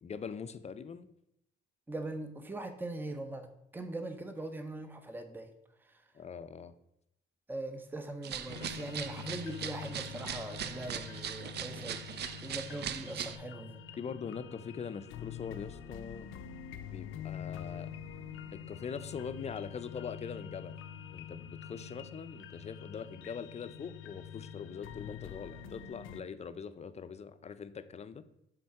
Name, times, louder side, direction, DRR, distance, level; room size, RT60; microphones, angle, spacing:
voice 1, 0.0-1.1 6.1-6.7 14.0-16.3 16.9-17.9 18.5-20.7 21.1-28.2, left 6 dB, 35° left, 12 dB, 0.5 m, -42 dB
voice 2, 1.9-5.5 5.8-6.0 7.5-12.0 12.4-13.8, right 2 dB, 10° right, 8 dB, 0.6 m, -41 dB
sound 1, 8.2-13.4, right 9 dB, 55° right, 0.5 m, -40 dB
sound 2, 8.5-26.2, left 8 dB, 85° left, 0.5 m, -46 dB
6.8 x 3.7 x 4.7 m, 0.79 s
cardioid pair, 90°, 20 cm